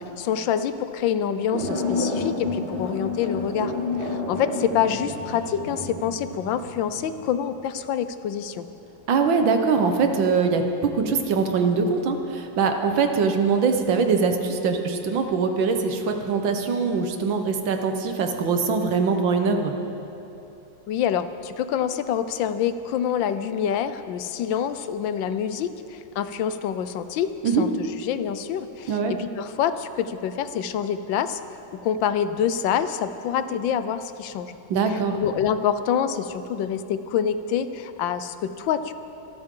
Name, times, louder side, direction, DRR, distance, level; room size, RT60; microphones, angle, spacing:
voice 1, 0.2-3.7 4.0-8.7 20.9-27.7 28.0-31.4 31.7-34.5 35.1-38.9, left 8 dB, 80° left, 11 dB, 1.4 m, -26 dB
sound 1, 1.5-7.5 10.4-10.8, left 2 dB, 35° right, 1.8 m, -30 dB
voice 2, 9.1-19.7 27.4-27.6 28.9-29.1 34.7-35.2, right 5 dB, 75° right, 5 dB, 1.8 m, -22 dB
24.5 x 13.0 x 3.8 m, 2.9 s
omnidirectional pair, 2.1 m